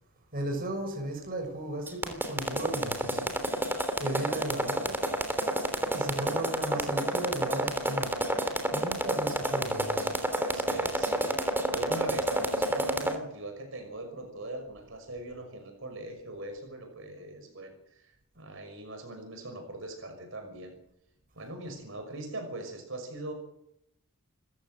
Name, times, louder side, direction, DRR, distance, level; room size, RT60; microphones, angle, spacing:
voice 1, 0.3-3.3 4.0-5.1 5.9-8.1 8.7-10.1, right 1 dB, 40° right, 6.5 m, -35 dB
sound 1, 1.9-13.1, right 1 dB, 10° right, 3.2 m, -28 dB
voice 2, 10.3-20.7 21.4-23.3, right 2 dB, 60° right, 5.9 m, -41 dB
28.5 x 15.5 x 7.8 m
head